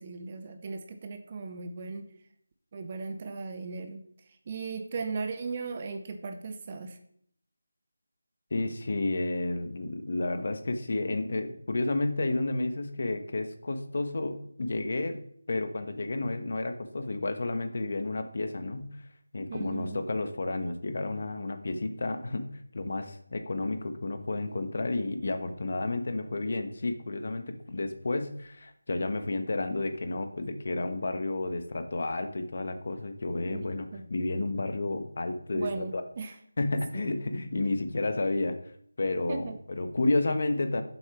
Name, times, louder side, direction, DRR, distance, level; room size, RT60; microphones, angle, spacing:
voice 1, 0.0-2.1 2.7-4.0 4.5-7.0 19.5-20.0 33.5-34.0 35.5-36.3 36.9-37.1 39.3-39.6, right 4 dB, 20° right, 7 dB, 0.6 m, -37 dB
voice 2, 8.5-15.2 15.5-19.1 19.3-36.0 36.6-38.6 39.0-40.8, left 2 dB, 45° left, 8 dB, 1.1 m, -31 dB
7.4 x 6.3 x 5.9 m, 0.66 s
figure-of-eight pair, 175°, 0 cm